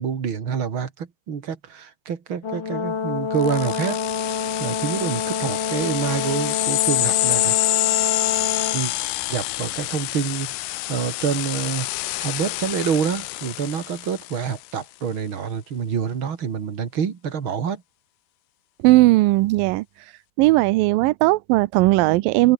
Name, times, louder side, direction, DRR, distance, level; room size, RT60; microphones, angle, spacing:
voice 1, 0.0-4.0 4.6-7.6 8.7-8.9 9.3-11.9 12.2-17.8, right 7 dB, 40° right, 2.4 m, -27 dB
Brass instrument, 2.4-8.8, left 6 dB, 35° left, 2.5 m, -27 dB
sound 1, 3.4-14.5, left 20 dB, 80° left, 2.1 m, -26 dB
voice 2, 18.8-19.9 20.4-22.5, right 19 dB, 75° right, 2.3 m, -17 dB
omnidirectional pair, 4.4 m